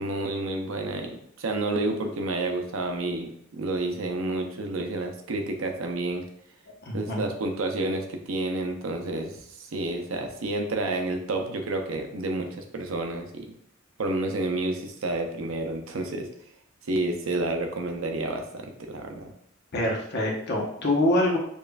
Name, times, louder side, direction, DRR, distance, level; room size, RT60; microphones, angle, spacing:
voice 1, 0.0-6.2 6.9-13.5 14.0-16.3 16.9-19.3, right 2 dB, 80° right, 4 dB, 0.6 m, -30 dB
voice 2, 6.9-7.2 19.7-21.4, left 1 dB, 55° left, -1 dB, 0.8 m, -25 dB
5.2 x 2.4 x 2.3 m, 0.72 s
head